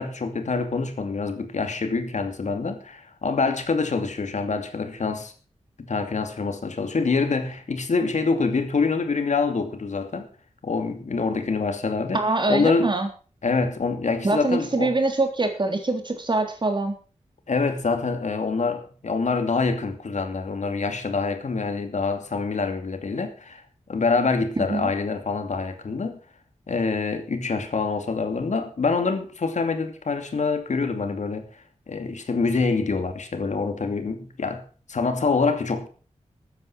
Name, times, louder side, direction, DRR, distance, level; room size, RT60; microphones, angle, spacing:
voice 1, 0.0-5.3 5.8-10.3 10.6-12.2 12.5-12.9 13.4-14.9 17.5-23.6 23.9-26.2 26.7-35.9, left 4 dB, 80° left, 2.6 m, -26 dB
voice 2, 12.1-13.1 14.2-16.9 24.6-24.9, right 2 dB, 40° right, 3.5 m, -24 dB
14.0 x 9.8 x 6.3 m
wide cardioid pair, 90°, 12 cm